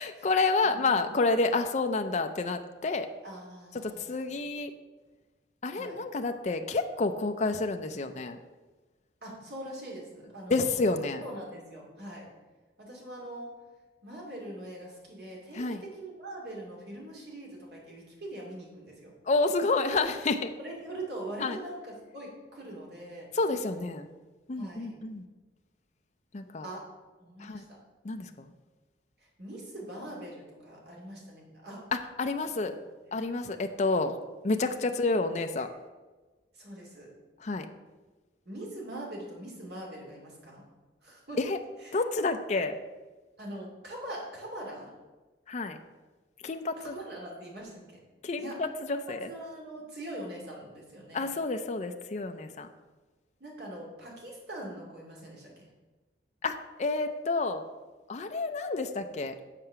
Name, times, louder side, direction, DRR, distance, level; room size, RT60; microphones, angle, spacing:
voice 1, 0.0-3.1 3.8-4.7 5.6-8.4 10.5-11.2 15.5-15.8 19.3-20.5 21.4-21.6 23.3-24.1 24.5-25.2 26.3-26.7 27.4-27.6 28.0-28.5 32.2-32.7 33.1-34.1 34.4-35.7 37.4-37.6 41.4-41.6 41.9-42.8 45.5-45.8 46.4-47.0 48.2-49.3 51.1-52.7 56.4-57.6 58.1-59.3, left 3 dB, 40° left, 6 dB, 0.5 m, -29 dB
voice 2, 0.6-1.3 3.2-4.3 5.7-6.0 9.2-10.7 11.2-12.3 12.8-13.5 14.0-19.1 20.6-23.3 24.6-24.9 26.6-26.8 27.2-27.8 29.2-31.8 32.6-32.7 34.8-35.0 36.5-37.1 38.5-40.6 41.0-41.4 41.8-42.0 43.4-44.9 46.8-48.0 48.4-48.6 49.3-51.2 53.4-55.7, right 1 dB, 60° right, -2 dB, 2.6 m, -42 dB
7.5 x 4.8 x 6.7 m, 1.2 s
head